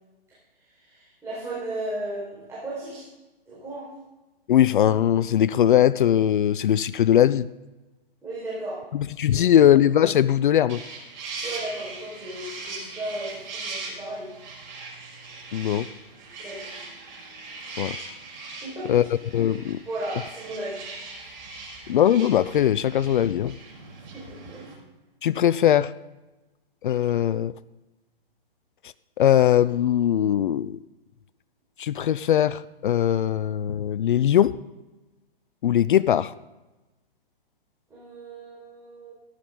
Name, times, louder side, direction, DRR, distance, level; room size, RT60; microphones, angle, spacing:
voice 1, 0.8-3.0 3.5-3.9 8.2-8.8 9.3-9.7 11.4-14.3 16.4-16.8 18.6-19.0 19.9-20.8 24.1-24.6 37.9-39.1, right 1 dB, 10° right, -8 dB, 4.9 m, -35 dB
voice 2, 4.5-7.5 8.9-10.8 15.5-15.9 17.8-18.0 18.9-19.0 19.3-19.8 21.9-23.5 25.2-25.9 26.8-27.5 29.2-30.8 31.8-34.5 35.6-36.3, left 10 dB, 60° left, 18 dB, 0.5 m, -20 dB
sound 1, 10.7-24.7, right 3 dB, 50° right, 5.4 m, -40 dB
14.5 x 12.0 x 3.9 m, 1.1 s
figure-of-eight pair, 125°, 29 cm